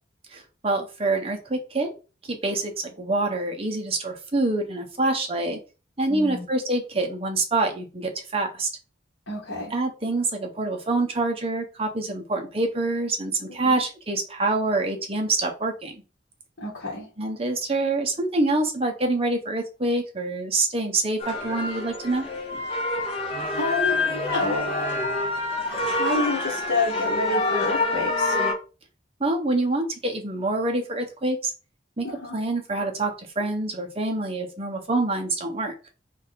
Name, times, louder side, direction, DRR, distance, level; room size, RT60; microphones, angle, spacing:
voice 1, 0.3-1.9 2.3-5.6 6.0-8.7 9.7-16.0 17.2-22.3 29.2-31.5 32.0-32.1 32.3-35.7, right 2 dB, 30° right, 3 dB, 0.9 m, -26 dB
voice 2, 6.1-6.5 9.3-9.7 13.5-13.8 16.6-17.1 23.6-25.0 25.6-28.4 32.0-32.4, left 2 dB, 65° left, -5 dB, 1.4 m, -29 dB
sound 1, 21.2-28.5, left 2 dB, 30° left, 1.0 m, -26 dB
3.6 x 3.2 x 4.0 m, 0.33 s
head